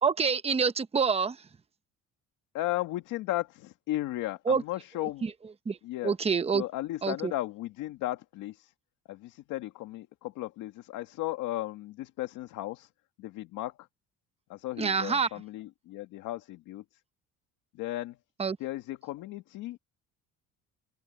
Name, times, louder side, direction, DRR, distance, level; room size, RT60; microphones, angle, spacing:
voice 1, 0.0-1.4 4.5-4.6 5.2-5.3 5.7-5.8 6.0-6.6 7.0-7.3 14.8-15.3 18.4-18.6, right 5 dB, 20° right, 1.0 m, -26 dB
voice 2, 2.5-5.3 5.8-6.1 6.5-8.7 9.1-12.9 13.2-13.7 14.5-16.8 17.7-18.2 18.6-19.8, left 16 dB, 80° left, 1.9 m, -35 dB
open air
cardioid pair, 120°, 31 cm